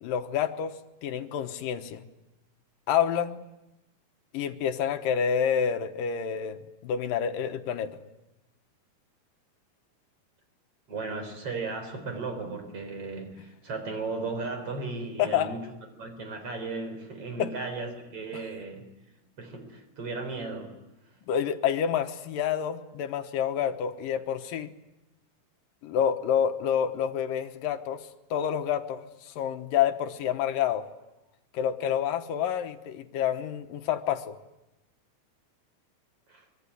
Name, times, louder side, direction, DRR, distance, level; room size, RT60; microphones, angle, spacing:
voice 1, 0.0-2.0 2.9-3.4 4.3-8.0 15.2-15.5 17.4-17.5 21.3-24.7 25.8-30.9 31.5-34.4, left 8 dB, 75° left, 8 dB, 2.8 m, -28 dB
voice 2, 10.9-15.7 16.0-18.9 19.4-20.7 36.3-36.4, right 3 dB, 40° right, 7 dB, 4.9 m, -35 dB
24.0 x 23.0 x 9.9 m, 0.96 s
omnidirectional pair, 4.2 m